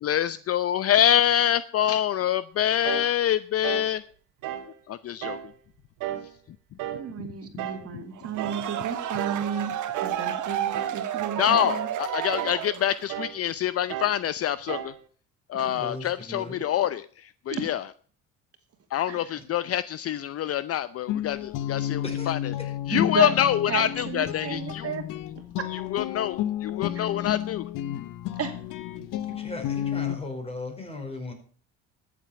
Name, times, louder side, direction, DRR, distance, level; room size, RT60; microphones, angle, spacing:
voice 1, 0.0-4.0 4.9-5.4 11.4-14.9 15.5-17.0 17.5-17.8 18.9-22.4 22.9-24.9 25.9-27.6, left 10 dB, 45° left, 0.6 m, -25 dB
sound 1, 2.8-3.1 3.6-3.9 4.4-4.7 5.2-5.5 6.0-6.3 6.8-7.1 7.6-7.9 8.4-8.7 9.2-9.5 9.9-10.2 10.7-11.1 11.5-11.9 12.3-12.6 13.1-13.4 13.9-14.2 14.7-15.0, right 12 dB, 75° right, 2.1 m, -34 dB
voice 2, 6.9-9.7 10.0-11.9 15.5-15.7 17.5-17.6 19.1-19.4 22.9-23.3 23.7-25.0 25.6-25.7 26.9-27.1 28.4-28.6, right 8 dB, 45° right, 2.5 m, -33 dB
sound 2, 8.2-13.2, right 10 dB, 60° right, 1.8 m, -31 dB
voice 3, 15.6-16.6 22.0-22.3 22.6-22.7 29.0-31.3, left 2 dB, 20° left, 5.0 m, -37 dB
Guitar, 21.1-30.2, left 11 dB, 70° left, 0.9 m, -31 dB
13.5 x 7.6 x 7.0 m
cardioid pair, 100°, 33 cm